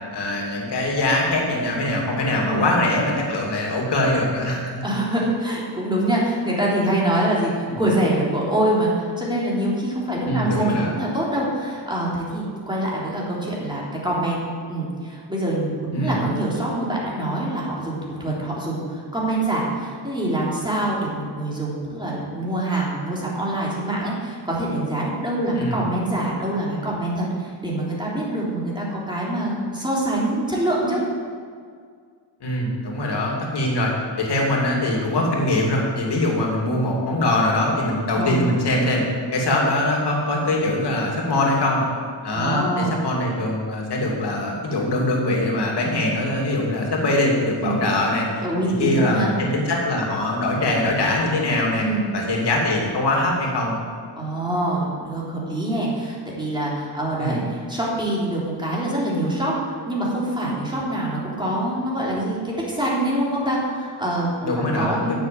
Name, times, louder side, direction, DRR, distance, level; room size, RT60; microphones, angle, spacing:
voice 1, 0.1-4.8 7.7-7.8 10.2-10.9 15.9-16.2 25.6-25.8 32.4-33.9 34.2-39.0 39.3-41.8 42.2-51.8 52.1-53.7 57.2-57.4 64.4-65.2, left 1 dB, 65° left, -1 dB, 2.9 m, -22 dB
voice 2, 4.8-14.4 14.7-31.0 38.1-38.4 42.3-42.9 47.6-47.8 48.4-49.3 51.8-52.1 54.2-59.5 59.9-65.2, right 1 dB, 10° right, -5 dB, 3.4 m, -25 dB
9.6 x 7.5 x 7.8 m, 2.1 s
cardioid pair, 110°, 44 cm